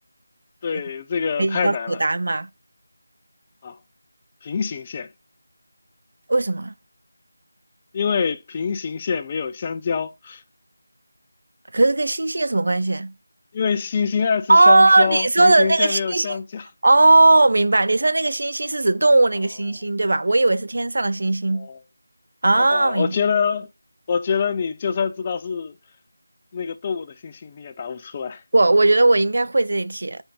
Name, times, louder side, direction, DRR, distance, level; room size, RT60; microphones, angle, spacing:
voice 1, 0.6-2.0 3.6-3.8 4.4-5.1 7.9-10.4 13.5-16.7 21.5-21.8 22.5-23.7 24.1-25.8 26.5-28.4, left 6 dB, 20° left, 0.5 m, -25 dB
voice 2, 1.4-2.5 6.3-6.7 11.7-13.1 14.5-16.4 16.8-21.7 22.4-23.1 28.5-30.2, right 2 dB, 60° right, 0.6 m, -18 dB
7.1 x 2.6 x 5.3 m
figure-of-eight pair, 170°, 0 cm